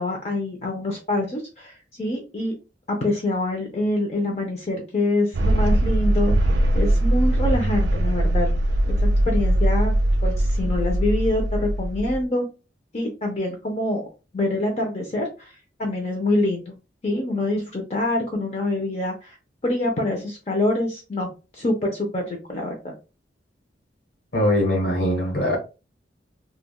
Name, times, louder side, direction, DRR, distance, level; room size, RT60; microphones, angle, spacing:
voice 1, 0.0-2.5 2.9-6.5 6.7-8.5 8.9-9.9 10.2-12.4 12.9-14.0 14.3-15.5 15.8-16.7 17.0-19.4 19.6-22.9, left 2 dB, 35° left, 0.6 m, -25 dB
sound 1, 5.3-12.2, right 1 dB, 85° right, 0.4 m, -21 dB
voice 2, 24.3-25.6, left 1 dB, 65° left, 1.3 m, -21 dB
3.3 x 2.3 x 2.2 m
head